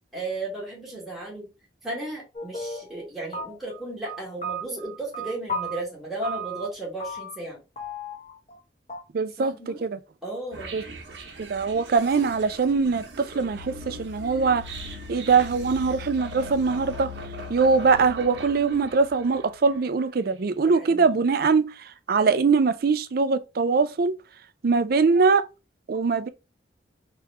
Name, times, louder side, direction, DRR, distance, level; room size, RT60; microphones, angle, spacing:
voice 1, 0.1-1.5 1.8-7.6 9.4-9.8 10.2-10.8 20.7-21.1, right 2 dB, ahead, 1.4 m, -35 dB
sound 1, 2.3-3.0 3.3-3.8 4.1-5.8 6.2-6.7 7.0-7.5 7.8-8.6 8.9-9.0, right 1 dB, 35° left, 1.1 m, -34 dB
voice 2, 9.1-10.0 10.7-10.8 11.4-14.8 15.1-17.1 17.5-24.1 24.6-25.4 25.9-26.3, right 4 dB, 55° right, 0.4 m, -22 dB
sound 2, 10.5-19.7, equal, 85° right, 0.9 m, -39 dB
3.5 x 2.9 x 3.2 m
head